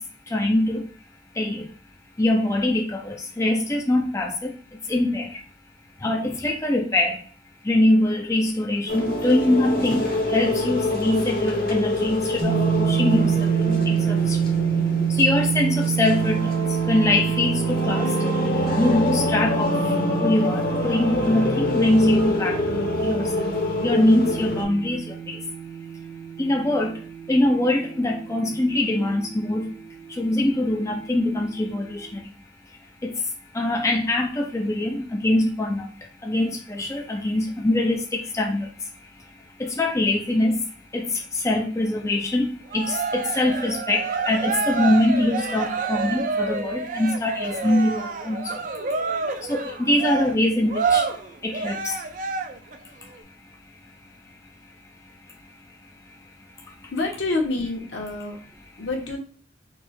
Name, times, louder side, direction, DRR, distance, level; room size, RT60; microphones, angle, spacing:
voice 1, 0.3-0.8 1.4-1.6 2.2-4.5 4.9-5.3 6.0-7.2 7.7-10.0 10.3-12.6 12.9-14.4 15.2-16.5 16.9-18.1 18.8-19.8 20.2-22.6 23.0-23.3 23.8-25.4 26.4-26.9 27.3-29.6 30.2-32.1 33.0-33.1 33.5-35.9 36.2-38.6 39.6-40.6 40.9-41.1 41.4-42.5 42.7-48.5 49.5-51.0 51.4-51.9, left 1 dB, 15° left, 0.4 m, -23 dB
sound 1, 8.9-24.6, left 2 dB, 50° left, 1.0 m, -26 dB
sound 2, 12.4-28.4, right 8 dB, 80° right, 1.6 m, -27 dB
Cheering, 42.7-52.8, right 4 dB, 45° right, 0.5 m, -28 dB
voice 2, 56.9-58.4 58.8-59.2, left 2 dB, 70° left, 1.3 m, -27 dB
4.5 x 2.3 x 4.3 m
head